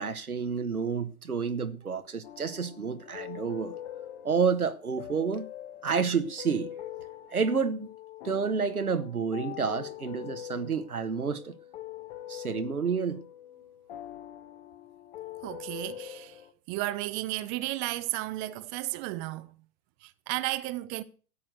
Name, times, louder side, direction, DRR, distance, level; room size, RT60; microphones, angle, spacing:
voice 1, 0.0-3.8 4.2-5.5 5.8-6.8 7.3-7.9 8.2-11.5 12.3-13.2, right 5 dB, 85° right, 1.5 m, -29 dB
sound 1, 2.2-16.5, left 12 dB, 45° left, 1.8 m, -44 dB
voice 2, 15.4-16.4 16.7-19.5 20.0-21.0, right 17 dB, 25° right, 0.8 m, -33 dB
13.5 x 8.7 x 6.5 m
figure-of-eight pair, 110°, 43 cm